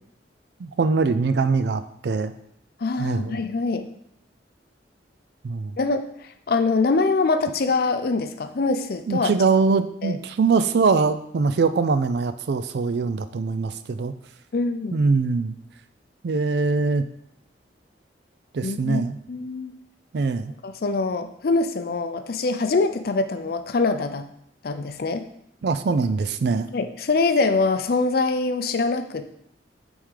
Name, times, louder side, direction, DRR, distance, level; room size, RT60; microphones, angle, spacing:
voice 1, 0.6-2.3 3.0-3.4 5.4-5.8 9.1-14.1 14.9-15.6 16.2-17.0 18.5-19.2 20.1-20.5 25.6-26.7, right 4 dB, 60° right, 12 dB, 0.4 m, -22 dB
voice 2, 2.8-3.9 5.8-6.0 6.5-9.3 10.0-10.2 14.5-14.9 18.6-19.0 19.3-19.7 20.6-24.3 24.6-25.2 26.7-29.2, left 3 dB, 55° left, 8 dB, 0.5 m, -24 dB
8.7 x 3.6 x 3.3 m, 0.71 s
head